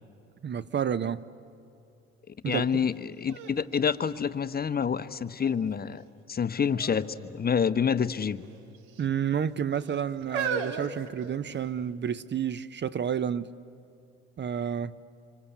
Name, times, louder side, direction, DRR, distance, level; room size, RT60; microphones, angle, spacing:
voice 1, 0.4-1.3 2.4-2.7 9.0-13.5 14.4-15.0, right 8 dB, 35° right, 0.7 m, -30 dB
voice 2, 2.3-6.0 6.3-8.4, left 7 dB, 30° left, 0.9 m, -28 dB
sound 1, 2.7-2.8 3.3-4.8 5.4-5.9 6.7-7.1 7.4-7.5 8.4-9.1 9.8-11.8 12.6-12.7, right 6 dB, 75° right, 1.7 m, -36 dB
26.5 x 25.5 x 8.1 m
hypercardioid pair, 65°, 32 cm